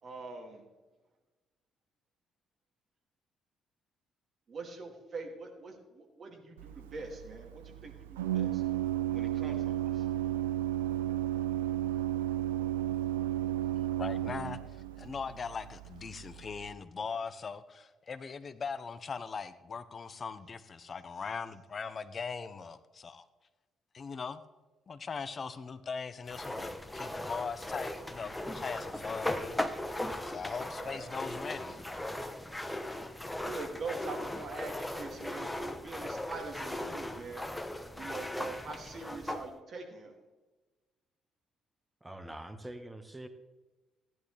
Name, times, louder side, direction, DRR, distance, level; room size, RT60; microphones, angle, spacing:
voice 1, 0.0-0.6 4.5-8.6 9.1-10.1 30.8-31.3 33.4-37.6 38.0-40.2, right 3 dB, 50° right, 2 dB, 2.6 m, -43 dB
Organ, 6.6-16.7, right 13 dB, 85° right, 0.4 m, -34 dB
voice 2, 13.8-23.2 23.9-24.4 24.9-29.6 30.2-31.8, left 5 dB, 45° left, 13 dB, 0.8 m, -40 dB
sound 1, 26.3-39.5, left 1 dB, 10° left, 1.1 m, -38 dB
voice 3, 42.0-43.3, right 1 dB, 15° right, 8 dB, 1.4 m, -44 dB
15.0 x 10.5 x 3.4 m, 1.2 s
hypercardioid pair, 50°, 0 cm